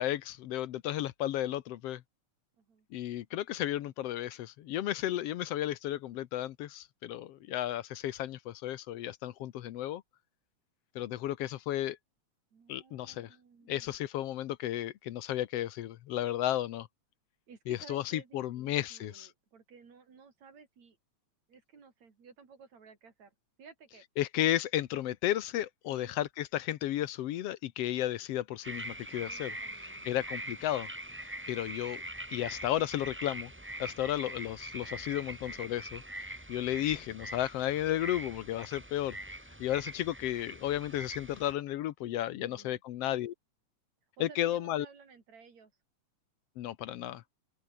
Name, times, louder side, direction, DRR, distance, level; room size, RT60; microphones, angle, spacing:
voice 1, 0.0-2.0 2.9-10.0 11.0-12.0 12.7-13.3 13.7-16.9 17.7-19.3 24.2-30.9 31.5-32.0 32.3-33.5 33.8-39.2 39.6-43.3 44.2-44.9 46.6-47.2, left 13 dB, 70° left, 1.7 m, -33 dB
voice 2, 12.5-14.0 17.5-21.0 21.5-24.0 25.9-26.1 29.2-30.3 42.4-42.8 44.2-45.7, right 5 dB, 70° right, 4.9 m, -55 dB
sound 1, 28.6-41.5, right 1 dB, 5° right, 1.2 m, -43 dB
open air
omnidirectional pair, 3.3 m